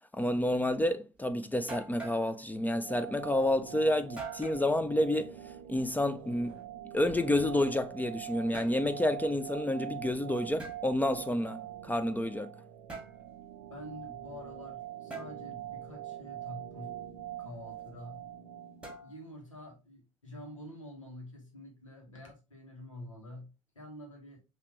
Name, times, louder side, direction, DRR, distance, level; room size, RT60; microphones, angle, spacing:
voice 1, 0.1-5.4 5.7-6.6 6.9-12.5, left 1 dB, 10° left, 0.5 m, -29 dB
sound 1, 1.2-1.3 1.7-2.3 4.2-4.7 6.3-7.8 8.3-8.9 10.6-10.8 12.9-13.2 15.1-15.3 18.8-19.4, right 3 dB, 5° right, 1.7 m, -44 dB
sound 2, 2.8-19.0, right 12 dB, 70° right, 0.5 m, -44 dB
voice 2, 13.7-17.0 17.4-18.2 19.0-24.4, left 1 dB, 90° left, 1.4 m, -47 dB
5.8 x 2.9 x 3.0 m
figure-of-eight pair, 60°, 16 cm